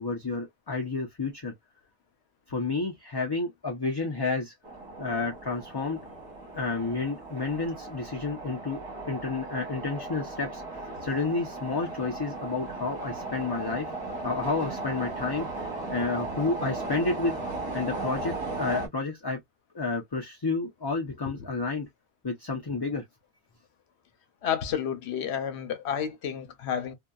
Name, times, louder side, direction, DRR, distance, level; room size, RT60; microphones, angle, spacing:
voice 1, 0.0-1.5 2.5-4.5 5.0-6.0 6.5-8.8 9.1-10.6 11.0-13.9 14.2-17.4 17.7-19.4 19.7-21.9 22.2-23.0, left 3 dB, 30° left, 0.4 m, -30 dB
sound 1, 4.6-18.9, right 2 dB, 25° right, 1.0 m, -36 dB
voice 2, 24.4-26.9, left 8 dB, 80° left, 0.9 m, -31 dB
2.7 x 2.2 x 2.2 m
omnidirectional pair, 1.1 m